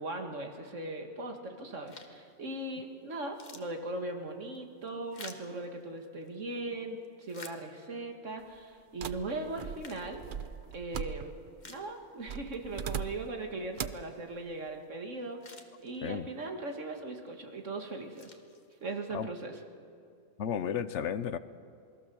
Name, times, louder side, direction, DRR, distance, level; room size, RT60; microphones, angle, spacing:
voice 1, 0.0-10.2 10.7-11.4 11.7-18.4 18.8-19.6, right 2 dB, 85° right, 2.3 m, -39 dB
sound 1, 1.9-2.3 2.8-2.9 3.2-6.4 6.9-8.1 8.7-8.8 9.5-10.8 11.2-11.3 11.6-12.4 12.8-12.9 14.9-15.0 15.2-16.3 16.9-17.3 17.8-19.1, left 3 dB, 40° left, 1.6 m, -52 dB
sound 2, 9.0-11.6 12.3-13.4 13.8-14.1, right 7 dB, 50° right, 0.8 m, -40 dB
voice 2, 20.4-21.4, left 8 dB, 70° left, 1.1 m, -33 dB
27.5 x 21.0 x 7.0 m
omnidirectional pair, 1.3 m